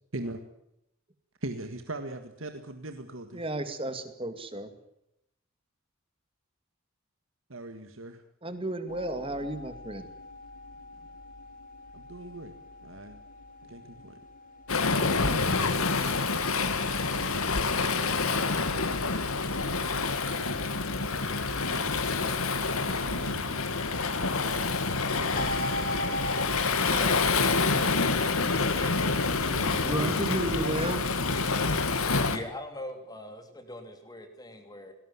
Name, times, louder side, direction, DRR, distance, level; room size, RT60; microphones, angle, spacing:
voice 1, 1.4-3.5 7.5-8.2 11.9-12.6 12.8-13.2 13.6-14.1 22.7-23.9 29.5-30.8, right 2 dB, 65° right, 7 dB, 1.9 m, -40 dB
voice 2, 3.3-4.7 8.4-10.1 29.9-31.0, right 1 dB, 25° right, 10 dB, 2.3 m, -33 dB
sound 1, 8.9-26.4, equal, 40° left, 5.1 m, -43 dB
Waves surf, 14.7-32.4, left 4 dB, 85° left, 2.4 m, -27 dB
voice 3, 26.8-27.3 28.8-29.3 32.2-34.9, left 1 dB, 20° left, 6 dB, 2.9 m, -41 dB
19.5 x 18.0 x 9.7 m, 0.79 s
head